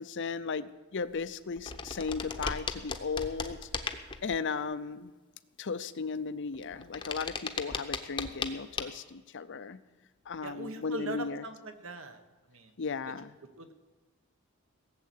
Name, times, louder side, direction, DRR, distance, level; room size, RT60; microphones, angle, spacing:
voice 1, 0.0-3.7 4.2-5.1 5.6-9.8 10.3-11.4 12.8-13.3, left 5 dB, 55° left, 14 dB, 0.6 m, -36 dB
sound 1, 1.2-1.3 1.6-4.4 6.5-8.5 8.8-8.9, left 4 dB, 20° left, 0.8 m, -36 dB
voice 2, 10.4-12.2 12.5-12.7 13.6-13.7, right 1 dB, 60° right, 7 dB, 1.4 m, -40 dB
17.5 x 7.6 x 8.3 m, 1.3 s
head